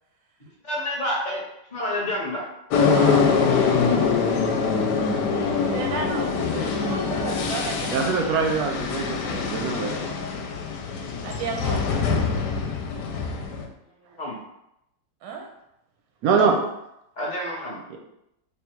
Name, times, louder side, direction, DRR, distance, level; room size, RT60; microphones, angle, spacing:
voice 1, 0.6-1.4 1.7-2.5 14.2-14.4 17.2-17.8, left 1 dB, 35° left, -4 dB, 0.8 m, -28 dB
sound 1, 2.7-13.7, left 5 dB, 75° left, 1.1 m, -24 dB
voice 2, 2.9-3.5 7.9-10.0 16.2-16.6 17.9-18.0, right 5 dB, 70° right, 2 dB, 0.9 m, -24 dB
voice 3, 5.6-7.9 11.2-11.9 15.2-15.5, right 5 dB, 85° right, 1 dB, 1.3 m, -33 dB
3.5 x 2.3 x 4.4 m, 0.83 s
omnidirectional pair, 1.9 m